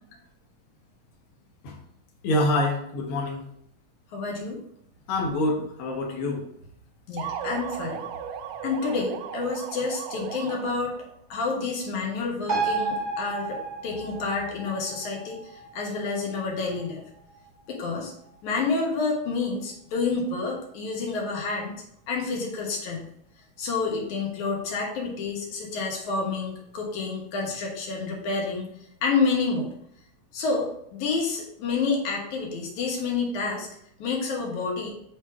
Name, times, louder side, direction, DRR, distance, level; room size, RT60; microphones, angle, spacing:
voice 1, 2.2-3.4 5.1-6.4, left 1 dB, 55° left, -1 dB, 1.9 m, -26 dB
voice 2, 4.1-4.6 7.1-8.0 8.6-10.9 11.3-17.0 17.7-18.1 18.4-21.8 22.1-23.1 23.6-28.7 29.0-29.7 30.3-33.7 34.0-34.9, left 4 dB, 75° left, -1 dB, 2.7 m, -29 dB
sound 1, 7.2-11.1, right 8 dB, 80° right, 1.8 m, -36 dB
sound 2, 12.5-19.4 19.8-19.9, right 3 dB, 45° right, 0.5 m, -34 dB
7.2 x 3.6 x 4.4 m, 0.71 s
omnidirectional pair, 3.5 m